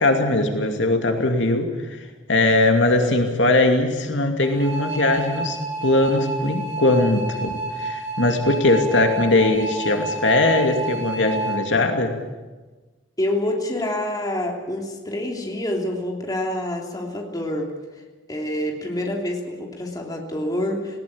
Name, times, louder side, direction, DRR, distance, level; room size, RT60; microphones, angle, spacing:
voice 1, 0.0-2.0 2.3-12.1, left 2 dB, 75° left, 4 dB, 2.5 m, -20 dB
sound 1, 4.4-11.6, right 2 dB, 90° right, 5.1 m, -30 dB
voice 2, 13.2-17.7 18.3-21.0, left 1 dB, 20° left, 1 dB, 3.2 m, -27 dB
19.5 x 18.5 x 8.7 m, 1.2 s
head